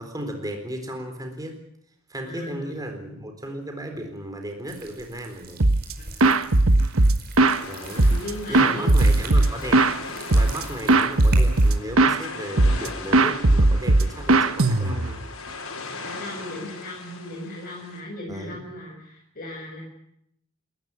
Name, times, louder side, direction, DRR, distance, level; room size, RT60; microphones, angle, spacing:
voice 1, 0.0-1.6 2.1-5.7 7.6-8.1 8.5-9.9 10.3-15.2 18.3-18.6, right 1 dB, 20° right, 5 dB, 4.0 m, -35 dB
voice 2, 2.2-3.2 6.4-6.5 7.8-9.1 16.0-19.8, left 1 dB, 45° left, -2 dB, 6.7 m, -37 dB
sound 1, 4.7-11.8, right 5 dB, 50° right, 5.0 m, -43 dB
sound 2, 5.6-5.9 6.2-7.6 8.0-10.0 10.3-10.6 10.9-12.2 12.6-12.9 13.1-15.2, right 2 dB, 75° right, 1.3 m, -18 dB
sound 3, 7.4-18.0, left 3 dB, 75° left, 5.6 m, -39 dB
27.0 x 14.5 x 9.7 m, 0.74 s
head